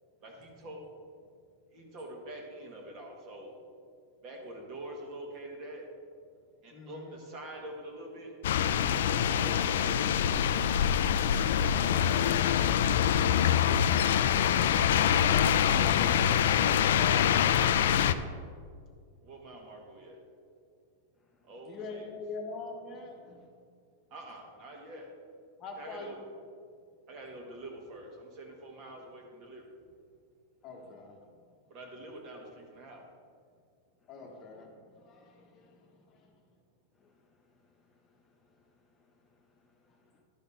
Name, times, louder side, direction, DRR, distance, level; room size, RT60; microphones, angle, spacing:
voice 1, 0.2-0.8 1.7-3.5 4.2-5.8 6.6-8.3 8.7-10.1 14.4-15.8 16.4-18.0 19.2-20.2 21.4-22.1 24.1-25.1 25.8-26.2 27.1-29.6 31.7-33.0, right 1 dB, 35° right, 1 dB, 1.6 m, -45 dB
voice 2, 6.7-7.2 11.9-12.9 21.7-23.5 25.6-26.1 30.6-31.2 34.1-36.3 37.0-37.1, left 3 dB, 30° left, 1 dB, 1.1 m, -45 dB
sound 1, 8.4-18.1, left 9 dB, 80° left, 0.4 m, -25 dB
voice 3, 37.5-38.3 39.7-40.2, left 5 dB, 15° left, -3 dB, 0.8 m, -69 dB
11.5 x 4.1 x 5.5 m, 2.1 s
supercardioid pair, 160°, 0 cm